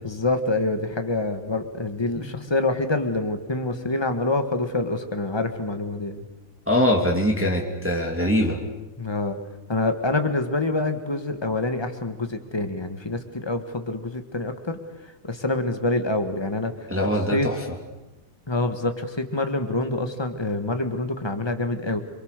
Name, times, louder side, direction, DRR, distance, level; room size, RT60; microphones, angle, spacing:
voice 1, 0.0-6.2 9.0-9.4 9.7-14.8 15.2-16.7 17.3-17.5 18.5-22.0, left 2 dB, 15° left, 7 dB, 1.6 m, -26 dB
voice 2, 2.2-2.5 6.7-8.6 16.9-17.6, equal, 5° right, 1 dB, 2.4 m, -23 dB
27.5 x 24.0 x 6.7 m, 1.1 s
omnidirectional pair, 2.2 m